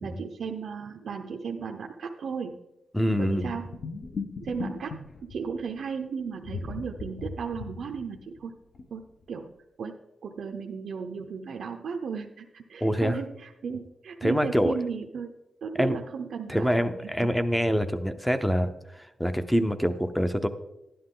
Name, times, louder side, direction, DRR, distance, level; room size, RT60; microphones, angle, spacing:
voice 1, 0.0-2.6 3.2-3.8 4.4-8.5 8.9-9.5 9.8-15.3 15.6-17.3, right 5 dB, 70° right, 2 dB, 0.7 m, -35 dB
voice 2, 2.9-3.5 12.8-13.1 14.2-14.7 15.8-16.0 16.5-20.5, equal, ahead, 10 dB, 0.6 m, -25 dB
sound 1, 3.4-5.7 6.4-8.4 8.7-8.8 9.2-9.3, left 4 dB, 55° left, 1.2 m, -37 dB
12.0 x 11.0 x 3.8 m, 0.91 s
wide cardioid pair, 165°, 0 cm